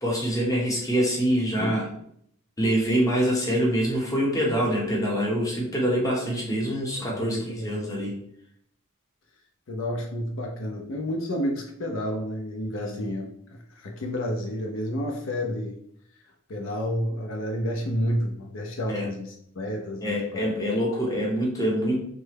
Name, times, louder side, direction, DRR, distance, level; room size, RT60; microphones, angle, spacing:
voice 1, 0.0-1.8 2.6-8.2 12.8-13.0 18.9-19.1 20.0-22.0, equal, 15° left, -3 dB, 0.8 m, -25 dB
voice 2, 7.0-8.2 9.7-15.7 16.5-20.6, equal, 70° left, 1 dB, 0.5 m, -30 dB
3.1 x 2.2 x 3.3 m, 0.70 s
head